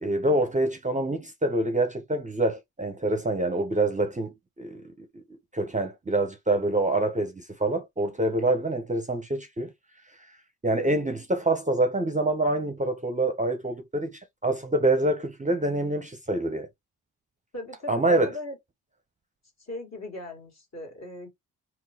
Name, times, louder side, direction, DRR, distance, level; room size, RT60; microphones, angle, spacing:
voice 1, 0.0-5.2 5.5-9.7 10.6-16.7 17.9-18.3, right 2 dB, 20° right, 0.7 m, -26 dB
voice 2, 17.5-18.6 19.6-21.3, left 2 dB, 40° left, 1.7 m, -38 dB
3.7 x 2.2 x 2.8 m
supercardioid pair, 50°, 39 cm